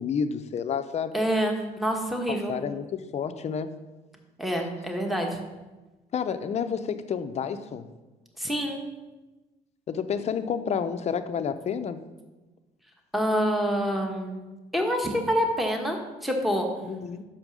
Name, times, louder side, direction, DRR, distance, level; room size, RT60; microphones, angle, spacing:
voice 1, 0.0-1.1 2.3-3.7 6.1-7.9 9.9-12.0 16.8-17.2, left 7 dB, 40° left, 10 dB, 0.5 m, -30 dB
voice 2, 1.1-2.5 4.4-5.4 8.4-8.8 13.1-14.4 14.7-16.7, equal, ahead, 2 dB, 1.1 m, -26 dB
5.7 x 5.2 x 6.2 m, 1.1 s
cardioid pair, 110°, 17 cm